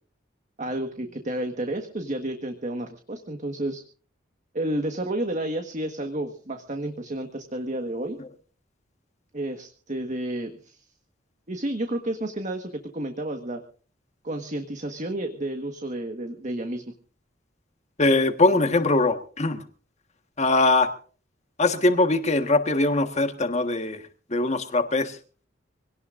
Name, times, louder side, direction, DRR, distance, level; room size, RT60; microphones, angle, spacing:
voice 1, 0.6-3.8 4.5-8.2 9.3-10.8 11.5-13.6 14.2-16.9, right 1 dB, 40° right, 5 dB, 1.5 m, -31 dB
voice 2, 18.0-19.6 20.4-20.9 21.6-24.0 24.3-25.2, left 2 dB, 35° left, 8 dB, 1.5 m, -21 dB
25.0 x 18.0 x 2.6 m, 0.39 s
head